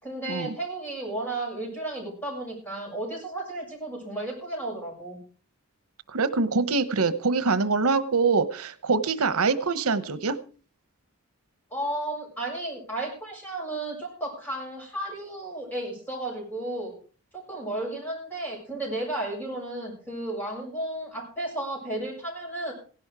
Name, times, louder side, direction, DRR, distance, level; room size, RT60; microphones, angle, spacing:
voice 1, 0.0-5.2 11.7-16.9 17.3-22.7, right 1 dB, 10° left, -1 dB, 7.0 m, -33 dB
voice 2, 6.1-10.4, right 4 dB, 85° right, 13 dB, 0.9 m, -24 dB
16.5 x 11.5 x 4.9 m, 0.40 s
head